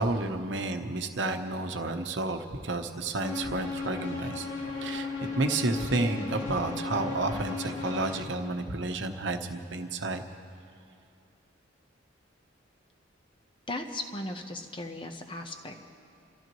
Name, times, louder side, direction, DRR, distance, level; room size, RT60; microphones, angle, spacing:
voice 1, 0.0-4.5 4.8-10.2, right 2 dB, 70° right, 5 dB, 1.0 m, -31 dB
sound 1, 3.2-8.2, left 4 dB, 85° left, 1.9 m, -35 dB
voice 2, 13.7-15.8, left 2 dB, 25° left, 5 dB, 0.9 m, -37 dB
28.5 x 15.0 x 3.1 m, 2.5 s
head